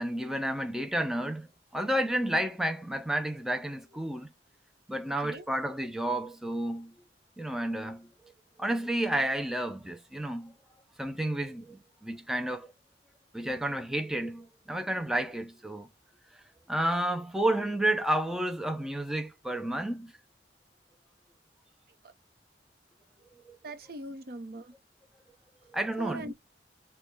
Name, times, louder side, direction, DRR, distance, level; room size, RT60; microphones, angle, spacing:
voice 1, 0.0-1.5 1.7-4.3 4.9-6.9 7.4-8.1 8.6-10.5 11.0-12.7 13.3-15.9 16.7-20.1 23.5-23.6 25.7-26.3, right 1 dB, 5° right, 0.3 m, -31 dB
voice 2, 23.6-24.7 26.0-26.3, right 2 dB, 55° right, 0.7 m, -40 dB
6.3 x 2.2 x 3.3 m
head